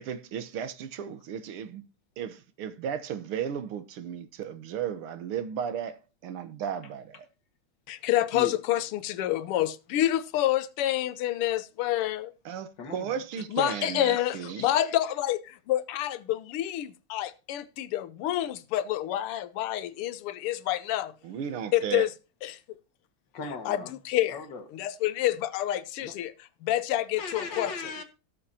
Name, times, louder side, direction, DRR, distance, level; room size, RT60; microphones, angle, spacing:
voice 1, 0.0-1.8 2.2-7.2 12.5-14.7 21.2-22.1, right 8 dB, 80° right, 1.9 m, -35 dB
voice 2, 7.9-12.3 13.5-21.1 21.7-22.1 22.4-22.5 23.7-23.8 24.1-24.3 24.7-26.3 26.6-27.7, left 13 dB, 85° left, 1.7 m, -28 dB
voice 3, 12.8-13.2 23.3-24.0 24.3-24.7 26.0-26.2 27.2-28.0, left 4 dB, 55° left, 2.2 m, -37 dB
17.5 x 7.1 x 2.8 m
omnidirectional pair, 2.4 m